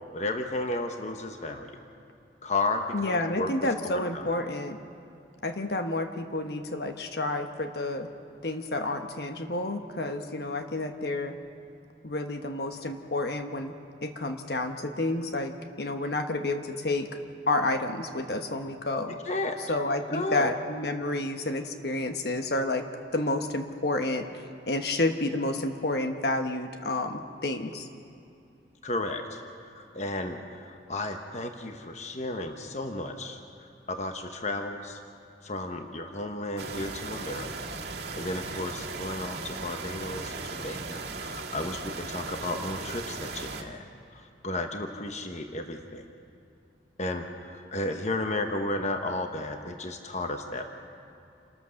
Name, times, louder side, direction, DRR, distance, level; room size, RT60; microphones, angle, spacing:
voice 1, 0.1-1.7 2.4-3.5 3.8-4.3 19.3-19.6 20.1-20.5 28.8-29.4 29.7-33.4 33.9-35.0 35.4-43.8 44.1-46.1 47.0-50.7, left 2 dB, 40° left, 5 dB, 1.1 m, -33 dB
voice 2, 2.9-4.8 5.4-8.1 8.4-11.4 12.0-13.7 14.0-17.1 17.5-19.2 19.7-22.8 23.1-24.3 24.6-27.9, left 2 dB, 60° left, 6 dB, 1.1 m, -30 dB
sound 1, 36.6-43.6, right 3 dB, 60° right, 1.8 m, -37 dB
28.5 x 14.0 x 6.5 m, 2.6 s
head